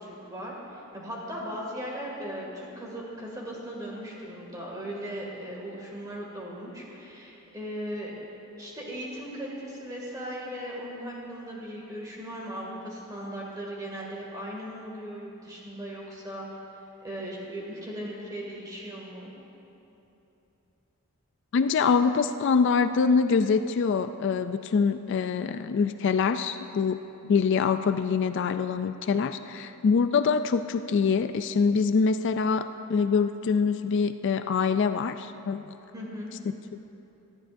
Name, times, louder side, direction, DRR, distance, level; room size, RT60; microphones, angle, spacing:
voice 1, 0.0-8.1 8.6-16.5 17.0-19.3 35.9-36.3, equal, 15° right, -3 dB, 2.2 m, -38 dB
voice 2, 21.5-35.7 36.7-36.8, left 5 dB, 55° left, 10 dB, 0.3 m, -25 dB
19.0 x 13.5 x 2.6 m, 3.0 s
head